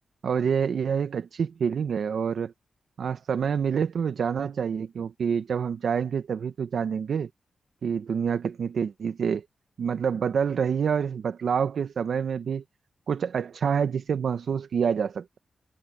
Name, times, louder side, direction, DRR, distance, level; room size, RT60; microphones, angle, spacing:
voice 1, 0.2-2.5 3.0-7.3 7.8-9.4 9.8-12.6 13.1-15.4, right 7 dB, 70° right, 0.7 m, -27 dB
wide cardioid pair, 125°, 0 cm